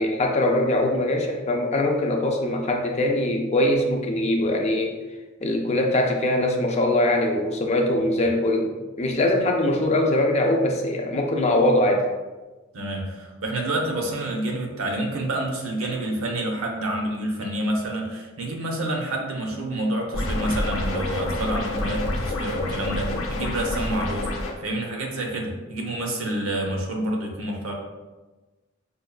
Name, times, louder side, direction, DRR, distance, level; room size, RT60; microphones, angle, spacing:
voice 1, 0.0-5.0 5.4-8.7 9.0-12.1, left 1 dB, 30° left, 2 dB, 0.4 m, -22 dB
voice 2, 12.7-24.3 24.6-27.7, right 1 dB, 85° right, 1 dB, 0.7 m, -28 dB
sound 1, 20.1-24.5, left 1 dB, 90° left, 0.6 m, -28 dB
5.2 x 2.3 x 2.3 m, 1.2 s
head